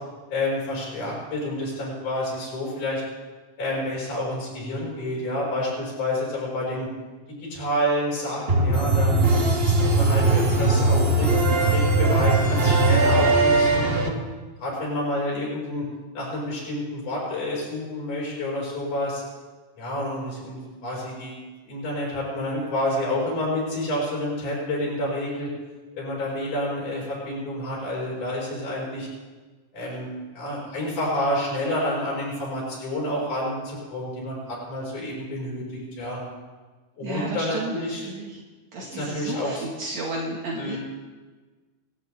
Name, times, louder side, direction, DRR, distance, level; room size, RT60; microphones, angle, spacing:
voice 1, 0.3-3.0 3.6-6.9 7.5-9.2 9.6-11.3 11.7-14.2 14.6-15.9 16.1-19.2 19.8-25.5 25.9-29.1 29.7-35.6 36.0-36.2 37.0-38.0 38.9-39.7 40.5-40.8, left 1 dB, 75° left, -4 dB, 7.0 m, -29 dB
sound 1, 8.5-14.1, right 2 dB, 35° right, 1.0 m, -20 dB
voice 2, 37.0-38.4 38.7-40.8, right 2 dB, 65° right, -3 dB, 3.1 m, -33 dB
28.0 x 12.5 x 3.6 m, 1.3 s
omnidirectional pair, 3.6 m